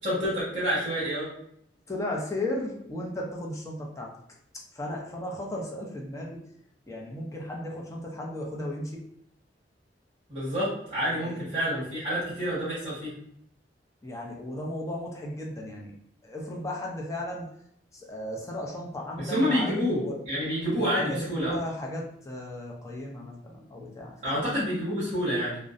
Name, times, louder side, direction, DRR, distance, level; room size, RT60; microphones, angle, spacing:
voice 1, 0.0-1.3 10.3-13.1 19.2-21.5 24.2-25.6, equal, 35° right, -12 dB, 1.1 m, -28 dB
voice 2, 1.9-4.1 4.7-6.4 6.9-9.0 11.1-11.4 14.0-15.9 16.2-17.5 17.9-20.2 20.8-24.5, left 1 dB, 15° left, -2 dB, 0.4 m, -35 dB
2.6 x 2.0 x 2.4 m, 0.71 s
head